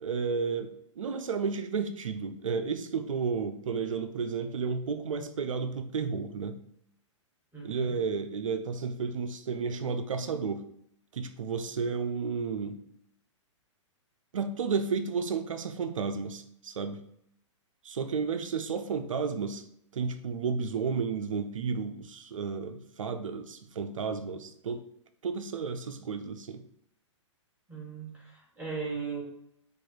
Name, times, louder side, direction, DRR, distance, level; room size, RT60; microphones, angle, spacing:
voice 1, 0.0-6.6 7.6-10.7 11.1-12.8 14.3-17.0 17.8-19.6 19.9-24.9 25.2-26.6, right 5 dB, 90° right, 10 dB, 0.5 m, -32 dB
voice 2, 7.5-7.9 27.7-29.2, right 5 dB, 10° right, -3 dB, 1.5 m, -37 dB
4.6 x 2.4 x 4.3 m, 0.72 s
hypercardioid pair, 130°, 16 cm